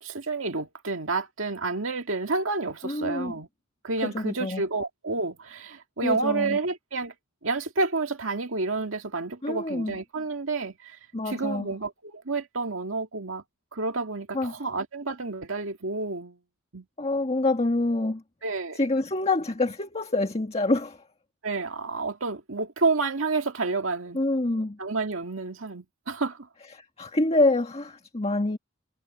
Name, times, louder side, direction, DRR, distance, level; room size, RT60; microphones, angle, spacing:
voice 1, 0.0-3.5 3.8-7.1 7.4-11.0 11.3-13.4 13.7-16.4 16.7-16.9 18.4-18.8 21.4-24.2 24.8-26.5, right 3 dB, 75° right, 2.0 m, -29 dB
voice 2, 2.8-3.3 4.0-4.6 6.0-6.6 9.4-10.0 11.1-11.7 14.3-14.5 17.0-18.2 18.8-21.0 24.1-24.8 26.7-28.6, left 2 dB, 30° left, 1.6 m, -26 dB
head